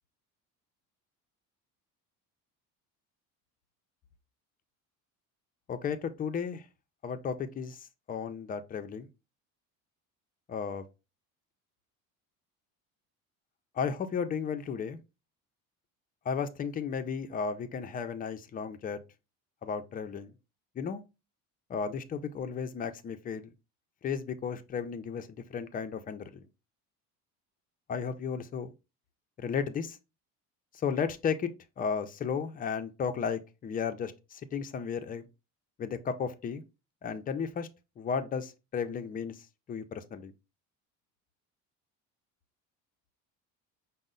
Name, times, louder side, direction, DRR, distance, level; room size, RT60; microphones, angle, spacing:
voice 1, 5.7-6.6 7.0-7.8 8.1-9.1 10.5-10.8 13.8-15.0 16.3-19.0 19.6-20.3 20.8-21.0 21.7-23.4 24.0-26.2 27.9-28.7 29.4-30.0 30.8-31.5 31.8-35.2 35.8-36.6 37.0-37.7 38.0-39.4 39.7-40.3, left 6 dB, 25° left, 0.4 m, -34 dB
5.2 x 2.0 x 3.7 m
cardioid pair, 130°, 34 cm